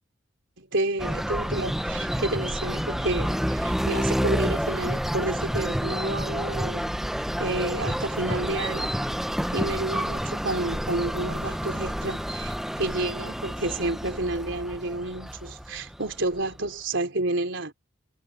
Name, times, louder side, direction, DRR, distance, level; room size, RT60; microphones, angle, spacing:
voice 1, 0.6-6.9 7.4-8.9 9.5-17.7, right 2 dB, 70° right, 3.4 m, -30 dB
sound 1, 1.0-16.7, equal, ahead, 0.8 m, -29 dB
head